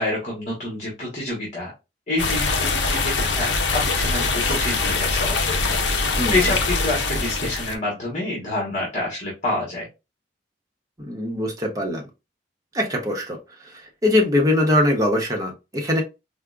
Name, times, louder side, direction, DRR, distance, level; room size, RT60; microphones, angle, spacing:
voice 1, 0.0-1.7 2.1-5.7 6.0-9.9, left 2 dB, 45° left, 1.2 m, -27 dB
sound 1, 2.2-7.8, left 3 dB, 80° left, 0.5 m, -23 dB
voice 2, 6.2-6.5 11.0-12.0 12.7-13.4 13.6-16.0, left 1 dB, 20° right, 0.8 m, -22 dB
4.7 x 2.1 x 2.4 m
head